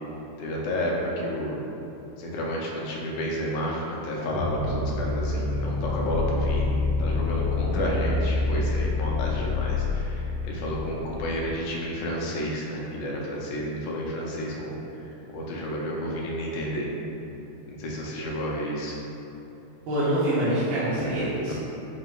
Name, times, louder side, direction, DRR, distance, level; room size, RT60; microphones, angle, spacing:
voice 1, 0.4-1.6 2.2-14.8 15.3-16.9 17.7-19.0 20.9-21.5, equal, 80° left, -3 dB, 2.1 m, -31 dB
sound 1, 4.3-11.5, left 3 dB, 60° left, 1.2 m, -27 dB
voice 2, 19.9-21.5, right 1 dB, 75° right, -11 dB, 1.8 m, -25 dB
6.0 x 2.1 x 2.9 m, 3.0 s
omnidirectional pair, 3.6 m